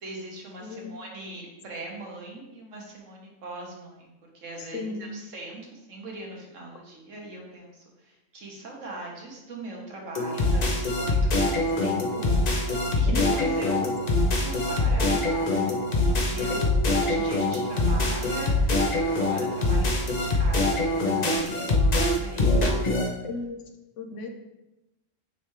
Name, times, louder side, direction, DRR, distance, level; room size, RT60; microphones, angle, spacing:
voice 1, 0.0-12.6 12.9-13.9 14.4-15.6 15.9-22.8, right 2 dB, 60° right, -1 dB, 1.6 m, -41 dB
voice 2, 0.6-1.0 4.6-5.1 13.1-13.7 16.5-16.9 23.2-23.6 24.0-24.3, left 4 dB, 65° left, 4 dB, 1.0 m, -35 dB
sound 1, 10.1-23.1, left 2 dB, 35° left, 0.7 m, -24 dB
9.0 x 3.5 x 3.2 m, 0.98 s
omnidirectional pair, 1.5 m